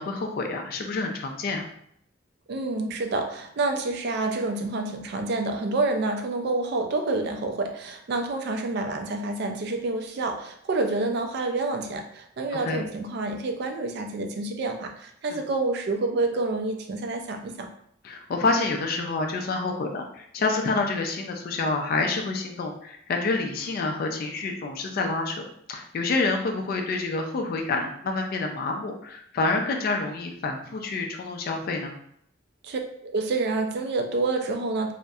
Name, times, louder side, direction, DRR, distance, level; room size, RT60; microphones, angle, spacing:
voice 1, 0.0-1.6 12.6-12.8 15.3-15.4 18.0-25.4 25.7-31.9, left 3 dB, 50° left, 3 dB, 0.3 m, -28 dB
voice 2, 2.5-17.7 32.6-34.9, right 3 dB, 55° right, 5 dB, 0.3 m, -28 dB
2.6 x 2.0 x 2.3 m, 0.68 s
head